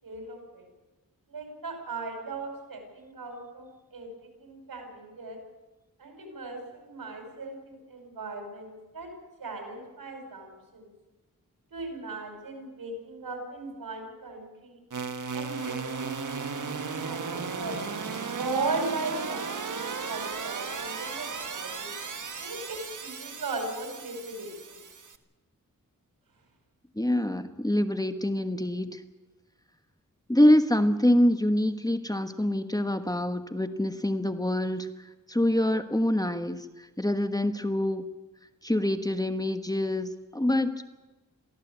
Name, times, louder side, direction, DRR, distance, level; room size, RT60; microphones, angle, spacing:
voice 1, 0.0-0.7 1.3-5.4 6.0-9.1 9.4-10.9 11.7-14.8 15.3-16.1 16.5-17.7 18.4-21.9 22.4-24.8, right 3 dB, 85° right, 4 dB, 5.4 m, -37 dB
sound 1, 14.9-25.2, right 5 dB, 60° right, 1.5 m, -35 dB
voice 2, 27.0-28.9 30.3-34.9 35.3-36.6 37.0-38.0 38.6-41.0, left 1 dB, 10° left, 9 dB, 1.3 m, -25 dB
23.0 x 15.0 x 8.3 m, 1.1 s
cardioid pair, 55°, 34 cm